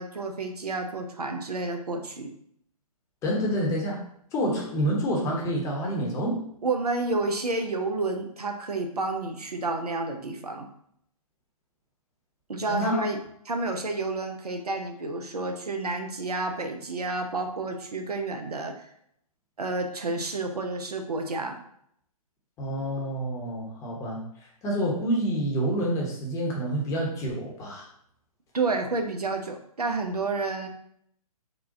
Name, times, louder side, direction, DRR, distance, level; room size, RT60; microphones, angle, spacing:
voice 1, 0.0-2.3 6.6-10.7 12.5-13.2 13.5-18.9 19.6-21.6 28.5-30.7, right 3 dB, 85° right, 5 dB, 0.7 m, -30 dB
voice 2, 3.2-4.0 4.3-6.5 12.7-13.0 22.6-24.2 24.6-27.9, equal, 15° left, -2 dB, 0.9 m, -28 dB
3.9 x 2.3 x 3.6 m, 0.69 s
figure-of-eight pair, 135°, 19 cm